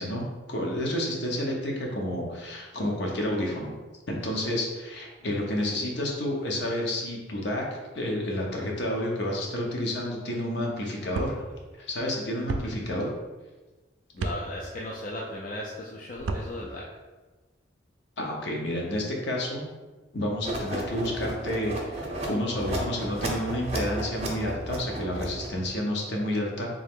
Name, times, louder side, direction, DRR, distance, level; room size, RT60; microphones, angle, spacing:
voice 1, 0.0-3.7 4.1-11.4 11.8-13.1 18.2-19.6 20.1-26.7, left 1 dB, 60° left, -1 dB, 0.8 m, -30 dB
sound 1, 11.1-11.3 12.5-12.6 14.2-14.4 16.1-16.5, right 3 dB, 85° right, 0.4 m, -30 dB
voice 2, 14.1-16.9, left 1 dB, 45° left, -3 dB, 0.4 m, -36 dB
sound 2, 20.4-25.7, right 1 dB, 35° right, 0.6 m, -33 dB
3.7 x 2.8 x 3.6 m, 1.2 s
head